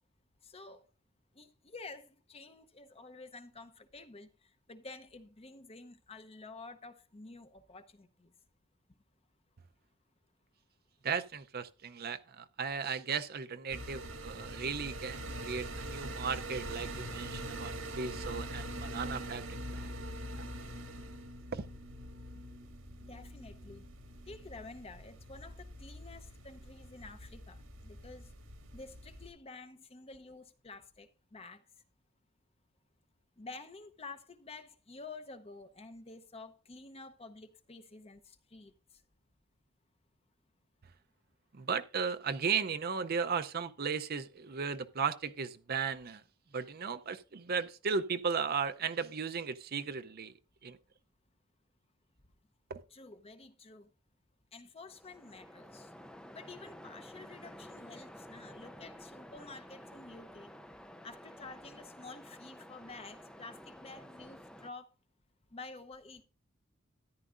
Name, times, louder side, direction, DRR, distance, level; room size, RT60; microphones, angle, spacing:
voice 1, 0.4-0.9 1.3-8.3 22.3-22.5 23.1-23.9 24.2-28.3 28.7-31.7 33.4-39.0 52.9-53.9 54.5-55.9 56.3-60.5 61.0-64.9 65.5-66.2, left 3 dB, 30° left, 0.8 m, -50 dB
voice 2, 11.0-19.5 19.7-20.0 21.5-21.7 41.5-46.2 46.5-50.3 50.6-50.8 52.7-52.8, right 6 dB, 50° right, 0.6 m, -36 dB
sound 1, 13.7-29.3, right 1 dB, 85° right, 1.9 m, -44 dB
Waves surf, 54.9-64.7, equal, 5° left, 0.5 m, -52 dB
13.5 x 10.5 x 2.5 m
head